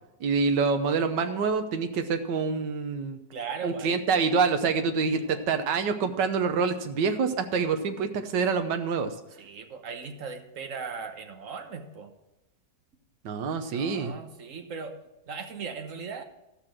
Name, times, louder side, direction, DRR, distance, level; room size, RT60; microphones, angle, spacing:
voice 1, 0.2-3.2 3.6-9.1 13.2-14.1, right 5 dB, 90° right, 8 dB, 1.5 m, -26 dB
voice 2, 3.3-4.0 4.9-5.4 9.4-12.1 13.7-15.0 15.3-16.2, right 5 dB, 50° right, 6 dB, 1.3 m, -38 dB
13.0 x 6.1 x 6.1 m, 0.94 s
omnidirectional pair, 1.9 m